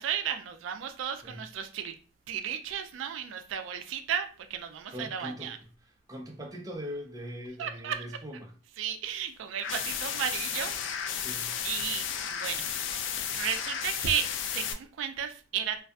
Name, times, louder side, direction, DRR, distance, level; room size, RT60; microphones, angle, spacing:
voice 1, 0.0-2.0 2.3-5.6 7.6-8.0 8.8-11.2 11.6-12.7 13.3-15.8, right 8 dB, 90° right, 0.3 m, -34 dB
voice 2, 4.9-8.5 11.2-11.5, equal, 20° right, 0.5 m, -41 dB
sound 1, 9.6-14.7, left 8 dB, 80° left, 0.3 m, -33 dB
2.6 x 2.4 x 2.2 m
head